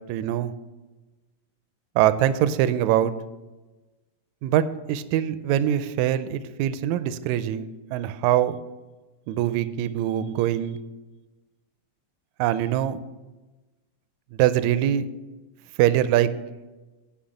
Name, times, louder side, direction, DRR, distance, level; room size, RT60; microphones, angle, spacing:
voice 1, 0.1-0.5 2.0-3.1 4.4-8.6 9.3-10.8 12.4-13.0 14.3-15.1 15.8-16.3, right 11 dB, 80° right, 13 dB, 1.8 m, -23 dB
10.5 x 5.1 x 6.9 m, 1.2 s
omnidirectional pair, 3.5 m